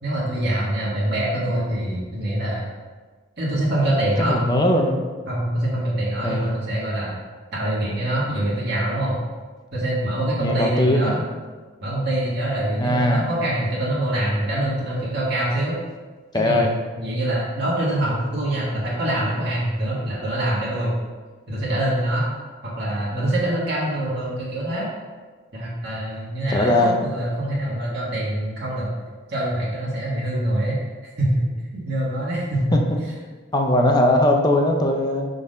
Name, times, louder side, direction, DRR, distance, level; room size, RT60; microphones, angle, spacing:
voice 1, 0.0-2.7 3.4-4.4 5.3-7.2 7.5-9.2 9.7-11.2 11.8-15.8 16.3-16.6 17.0-21.0 21.5-22.3 22.6-24.9 25.5-28.9 29.3-30.8 31.2-31.5 31.7-32.8, right 1 dB, 55° right, -7 dB, 1.6 m, -24 dB
voice 2, 4.2-5.0 6.2-6.5 10.4-11.2 12.8-13.3 16.3-16.7 26.5-27.0 32.7-32.8 33.5-35.3, left 1 dB, 20° left, 2 dB, 0.6 m, -20 dB
5.8 x 4.0 x 5.2 m, 1.4 s
head